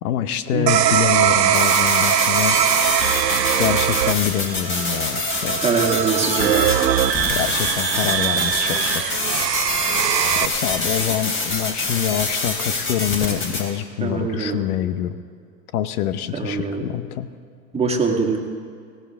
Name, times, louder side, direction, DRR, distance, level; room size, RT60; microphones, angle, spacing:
voice 1, 0.0-2.6 3.6-5.7 7.3-9.2 10.4-15.2 15.7-17.3, left 11 dB, 60° left, 13 dB, 0.9 m, -25 dB
sound 1, 0.7-10.5, right 10 dB, 85° right, 0.9 m, -21 dB
sound 2, 1.5-13.6, left 3 dB, 25° left, 3.1 m, -26 dB
voice 2, 5.6-6.8 14.0-14.6 16.3-16.9 17.7-18.4, right 4 dB, 10° right, 1 dB, 1.8 m, -23 dB
18.5 x 16.0 x 3.6 m, 2.2 s
hypercardioid pair, 105°, 49 cm